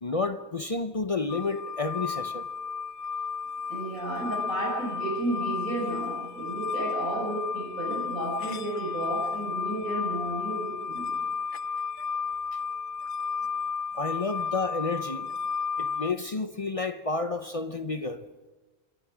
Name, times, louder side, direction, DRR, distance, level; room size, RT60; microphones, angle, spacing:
voice 1, 0.0-2.5 12.5-12.6 13.9-15.3 15.8-18.2, left 3 dB, 35° left, 0.6 m, -30 dB
sound 1, 1.3-16.1, left 5 dB, 90° left, 1.3 m, -33 dB
voice 2, 3.7-11.1, right 1 dB, 75° right, 6.1 m, -32 dB
27.0 x 23.5 x 5.0 m
omnidirectional pair, 1.5 m